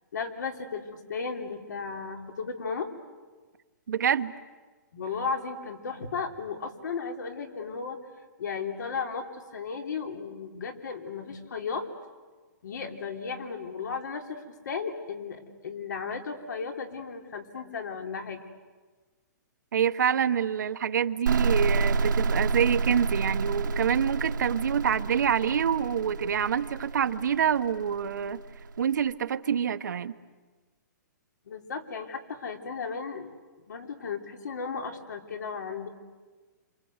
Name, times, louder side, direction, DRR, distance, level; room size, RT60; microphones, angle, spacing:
voice 1, 0.1-2.9 4.9-8.0 8.4-11.9 12.6-18.4 31.5-33.3 33.7-35.9, left 5 dB, 70° left, 4 dB, 3.6 m, -35 dB
voice 2, 3.9-4.3 19.7-28.4 28.8-30.1, right 8 dB, 70° right, 11 dB, 1.0 m, -26 dB
sound 1, 21.3-28.8, right 4 dB, 90° right, 1.6 m, -29 dB
28.0 x 27.0 x 8.0 m, 1.3 s
hypercardioid pair, 175°, 10 cm